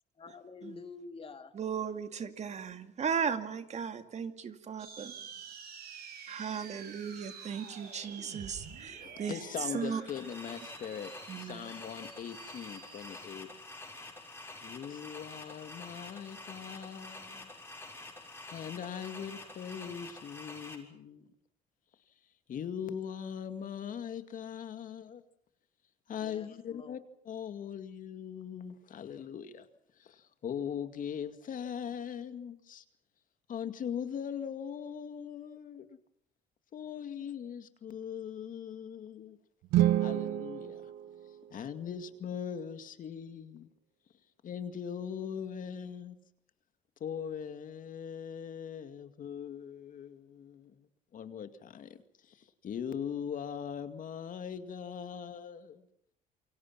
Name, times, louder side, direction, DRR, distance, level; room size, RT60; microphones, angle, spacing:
voice 1, 0.2-1.5 26.2-27.0, left 4 dB, 35° left, 2.6 m, -48 dB
voice 2, 1.5-5.1 6.3-9.4 9.7-10.0 11.3-11.7, right 7 dB, 40° right, 2.2 m, -36 dB
sound 1, 4.8-13.2, right 7 dB, 65° right, 7.3 m, -49 dB
voice 3, 9.0-13.5 14.6-17.5 18.5-21.3 22.5-25.2 26.1-27.0 27.2-29.7 30.0-32.8 33.5-36.0 36.7-39.4 40.0-40.9 41.5-43.7 44.4-46.2 47.0-55.9, left 8 dB, 50° left, 2.2 m, -40 dB
sound 2, 10.1-20.8, left 2 dB, 15° left, 6.6 m, -48 dB
sound 3, 39.6-41.9, right 13 dB, 90° right, 1.0 m, -30 dB
28.5 x 24.0 x 5.9 m
cardioid pair, 110°, 17 cm